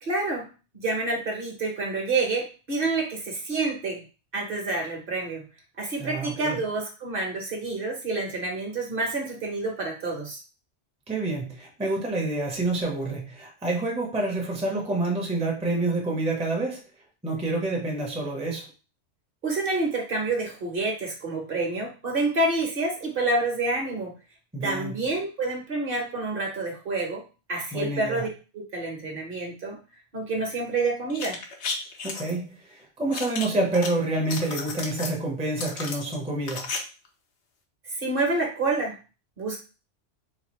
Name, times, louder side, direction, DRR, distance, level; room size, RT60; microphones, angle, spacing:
voice 1, 0.0-4.0 4.3-5.5 5.8-10.4 19.4-24.1 24.6-27.2 27.5-28.3 28.5-29.8 30.1-31.4 37.8-39.0 39.4-39.6, right 2 dB, 50° right, 0 dB, 1.1 m, -28 dB
voice 2, 6.0-6.6 11.1-16.8 17.2-18.7 24.5-25.0 27.7-28.2 32.0-36.7, right 2 dB, 5° right, 0 dB, 0.6 m, -28 dB
sound 1, 31.1-32.3 33.1-33.9 34.2-35.2 35.6-36.8 37.0-37.1, left 4 dB, 70° left, 1.0 m, -33 dB
4.1 x 2.4 x 3.0 m, 0.33 s
omnidirectional pair, 1.2 m